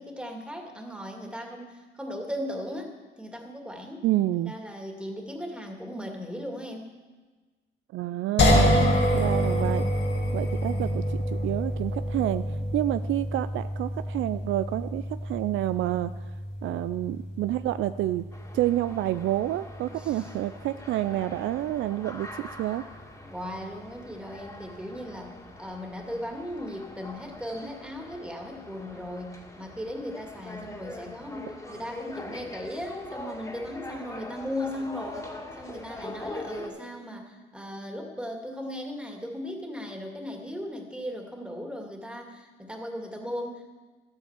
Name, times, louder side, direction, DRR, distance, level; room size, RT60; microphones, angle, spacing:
voice 1, 0.0-4.1 4.3-6.9 19.9-20.3 23.3-43.7, equal, 5° right, 2 dB, 2.3 m, -37 dB
voice 2, 4.0-4.5 7.9-9.8 10.3-12.5 12.7-16.1 16.6-18.2 18.5-22.8, right 14 dB, 80° right, 12 dB, 0.4 m, -28 dB
sound 1, 8.4-21.5, left 1 dB, 65° left, 2.2 m, -28 dB
sound 2, 18.3-36.7, left 2 dB, 15° left, 2.2 m, -43 dB
12.5 x 8.8 x 7.4 m, 1.3 s
cardioid pair, 90°, 20 cm